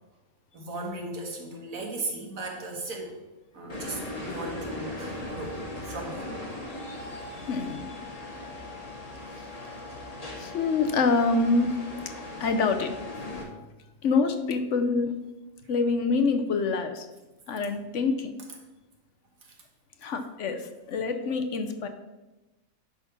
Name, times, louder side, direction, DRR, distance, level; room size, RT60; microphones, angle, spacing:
voice 1, 0.5-3.1 3.5-5.6 5.9-6.3 6.9-7.3 12.2-12.4 19.4-19.5, right 2 dB, 70° right, 1 dB, 2.0 m, -37 dB
sound 1, 3.7-13.4, left 2 dB, 25° left, 1.5 m, -38 dB
voice 2, 7.5-7.9 10.4-11.7 12.4-13.0 14.0-15.1 15.7-17.1 17.5-18.3 20.0-21.9, left 4 dB, 60° left, 7 dB, 1.1 m, -26 dB
10.5 x 4.1 x 5.8 m, 1.1 s
omnidirectional pair, 1.5 m